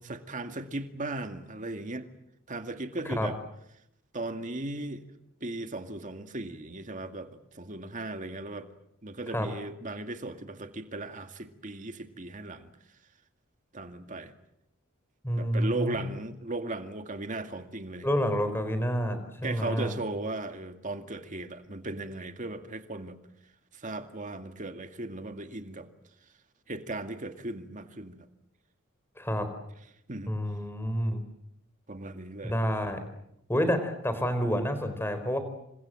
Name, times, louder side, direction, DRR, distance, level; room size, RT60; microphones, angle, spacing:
voice 1, 0.0-2.1 2.5-3.4 4.1-5.0 5.4-8.7 9.0-12.7 13.7-14.3 15.3-18.1 19.4-23.2 23.7-25.9 26.7-28.3 30.1-30.3 31.9-32.6, right 2 dB, 35° right, 2.2 m, -37 dB
voice 2, 15.2-16.0 18.0-19.9 29.2-29.5 30.3-31.2 32.4-33.0 33.5-35.4, equal, 10° left, 4.4 m, -28 dB
28.5 x 26.0 x 7.7 m
head